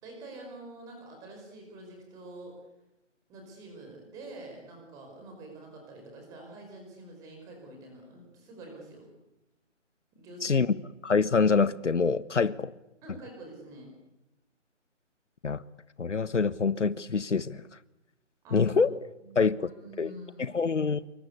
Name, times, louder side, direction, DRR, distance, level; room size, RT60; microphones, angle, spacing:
voice 1, 0.0-2.6 3.3-9.1 10.1-10.7 13.0-13.9 18.4-18.8 19.2-20.6, right 2 dB, 10° right, 5.1 m, -46 dB
voice 2, 10.4-10.7 11.0-12.7 15.4-15.6 16.0-17.6 18.5-18.9 19.3-19.6 20.0-20.1 20.4-21.0, left 5 dB, 70° left, 1.3 m, -25 dB
28.0 x 24.0 x 8.3 m
figure-of-eight pair, 165°, 37 cm